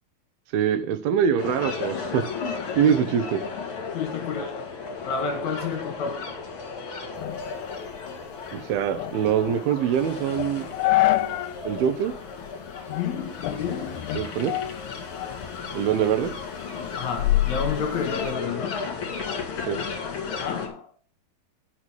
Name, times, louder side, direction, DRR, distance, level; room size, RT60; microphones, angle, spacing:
voice 1, 0.5-2.2 2.7-3.4 8.5-10.7 11.6-12.1 14.1-14.5 15.7-16.3 19.7-19.8, right 8 dB, 80° right, 2.8 m, -23 dB
sound 1, 1.4-20.7, left 5 dB, 45° left, 2.3 m, -34 dB
voice 2, 3.9-6.5 12.9-14.1 17.0-18.9 20.3-20.9, left 6 dB, 60° left, 2.2 m, -31 dB
sound 2, 7.2-11.6 12.0-12.1 12.7-13.1 13.4-15.5 15.9-18.3, left 16 dB, 85° left, 2.5 m, -28 dB
9.4 x 6.2 x 5.9 m
omnidirectional pair, 4.3 m